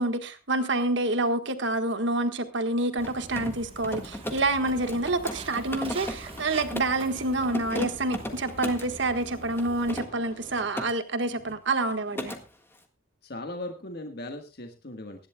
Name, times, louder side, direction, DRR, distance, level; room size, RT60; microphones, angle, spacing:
voice 1, 0.0-12.3, right 2 dB, 65° right, 8 dB, 1.5 m, -27 dB
Mechanisms, 2.9-7.0 7.4-8.9 9.5-10.9 11.2-11.6 11.8-12.4, left 1 dB, 10° left, 1.6 m, -36 dB
Walk footsteps, 3.0-10.0, right 2 dB, 30° right, 1.3 m, -44 dB
sound 1, 4.6-10.7, left 1 dB, 35° left, 4.1 m, -49 dB
voice 2, 13.2-15.3, left 1 dB, 55° left, 4 dB, 1.5 m, -38 dB
24.0 x 11.0 x 2.3 m, 0.28 s
head